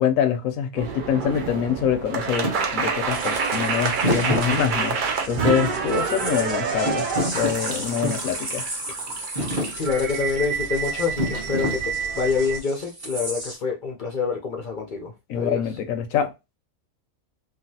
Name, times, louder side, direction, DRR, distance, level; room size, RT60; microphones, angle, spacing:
voice 1, 0.0-2.5 2.7-5.0 5.2-7.1 7.3-8.6 15.3-16.3, left 8 dB, 80° left, 1.0 m, -25 dB
sound 1, 0.8-12.6, right 5 dB, 70° right, 0.4 m, -28 dB
Thump thud, 2.4-2.6 4.0-5.1 5.5-6.5 6.9-8.3 8.9-9.1 9.4-9.7 11.2-12.2, equal, 30° right, 1.1 m, -27 dB
sound 2, 3.1-13.6, right 1 dB, 45° right, 1.3 m, -37 dB
voice 2, 9.7-11.8 12.2-15.6, left 5 dB, 55° left, 0.6 m, -26 dB
3.1 x 2.3 x 2.7 m
omnidirectional pair, 1.4 m